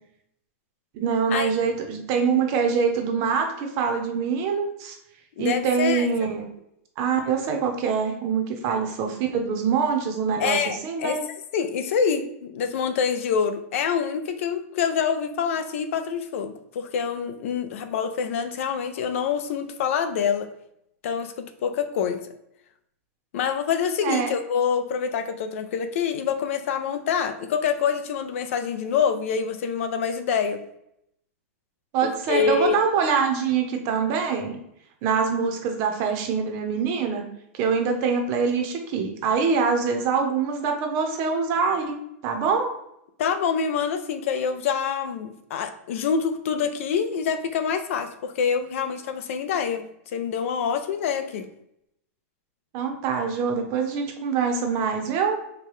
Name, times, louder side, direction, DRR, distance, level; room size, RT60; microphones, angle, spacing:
voice 1, 0.9-5.0 5.4-6.5 7.0-11.2 24.0-24.3 31.9-34.6 35.0-37.2 37.5-42.0 42.2-42.7 52.7-55.4, right 6 dB, 35° right, 4 dB, 0.7 m, -24 dB
voice 2, 5.4-6.1 10.4-11.2 11.5-20.5 21.0-22.2 23.3-30.6 32.0-32.8 43.2-49.9 50.1-51.5, left 7 dB, 65° left, 9 dB, 0.4 m, -26 dB
4.7 x 2.2 x 3.0 m, 0.77 s
supercardioid pair, 155°, 8 cm